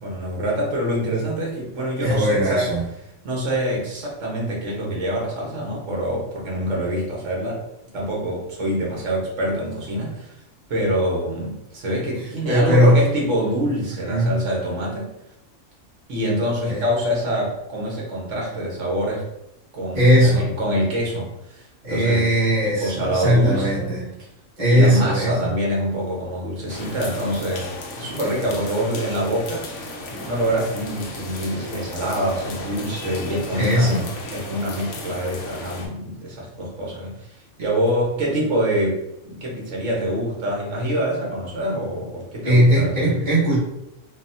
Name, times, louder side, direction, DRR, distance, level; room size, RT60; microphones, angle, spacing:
voice 1, 0.0-2.7 3.2-7.6 7.9-10.3 10.7-15.1 16.1-19.3 19.7-22.2 22.6-23.9 24.6-27.7 28.0-29.7 30.2-34.0 34.3-43.1, equal, 60° right, -3 dB, 1.4 m, -25 dB
voice 2, 2.0-2.8 12.4-13.0 14.0-14.4 16.7-16.8 19.9-20.5 21.8-24.0 24.6-25.5 33.5-34.0 42.4-43.6, equal, 20° right, -9 dB, 1.1 m, -18 dB
sound 1, 26.7-35.9, left 2 dB, 65° left, 0.9 m, -35 dB
3.8 x 2.1 x 2.6 m, 0.86 s
omnidirectional pair, 1.5 m